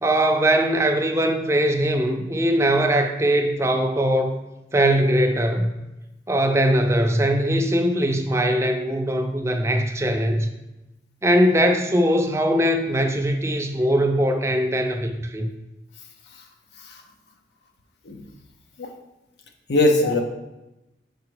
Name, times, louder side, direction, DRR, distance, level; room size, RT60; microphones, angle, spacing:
voice 1, 0.0-4.4 4.7-5.7 6.3-10.5 11.2-15.5, right 1 dB, 15° right, 4 dB, 0.4 m, -21 dB
voice 2, 19.7-20.2, left 2 dB, 75° left, 3 dB, 0.7 m, -20 dB
5.1 x 4.7 x 4.7 m, 0.96 s
head